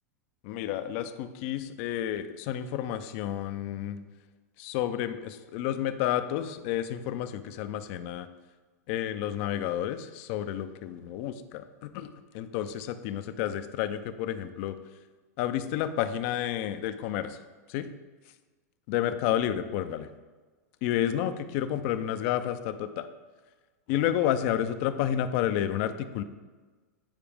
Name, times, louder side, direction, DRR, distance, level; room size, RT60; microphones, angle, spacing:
voice 1, 0.4-4.0 4.6-8.3 8.9-14.8 15.4-17.4 17.7-17.9 18.9-20.1 20.8-23.1 23.9-26.2, left 11 dB, 50° left, 11 dB, 0.5 m, -30 dB
8.9 x 4.6 x 3.5 m, 1.3 s
hypercardioid pair, 115°, 9 cm